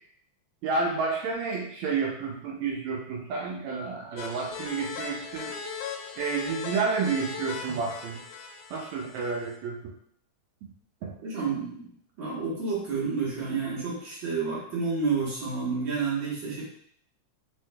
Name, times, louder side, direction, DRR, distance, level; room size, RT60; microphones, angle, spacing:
voice 1, 0.6-5.5 6.2-8.2 8.7-9.8 11.0-11.1, right 4 dB, 75° right, -1 dB, 1.8 m, -30 dB
sound 1, 4.2-9.6, left 5 dB, 90° left, 2.2 m, -38 dB
voice 2, 11.2-16.6, right 4 dB, 55° right, -6 dB, 1.4 m, -30 dB
4.6 x 4.2 x 2.2 m, 0.63 s
omnidirectional pair, 3.6 m